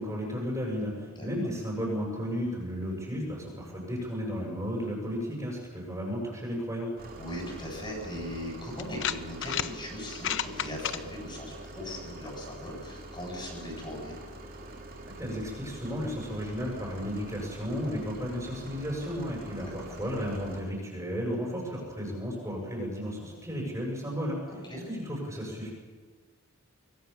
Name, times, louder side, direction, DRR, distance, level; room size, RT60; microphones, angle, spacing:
voice 1, 0.0-6.9 15.2-24.4 24.9-25.7, equal, 15° right, -2 dB, 7.4 m, -33 dB
sound 1, 7.0-20.6, right 1 dB, 40° right, 3.1 m, -45 dB
voice 2, 7.2-14.2 19.6-20.0 24.5-24.9, left 1 dB, 20° left, -1 dB, 7.9 m, -39 dB
sound 2, 8.0-8.1 8.8-9.7 10.1-11.0, left 9 dB, 55° left, 0.9 m, -31 dB
25.0 x 23.5 x 7.2 m, 1.5 s
head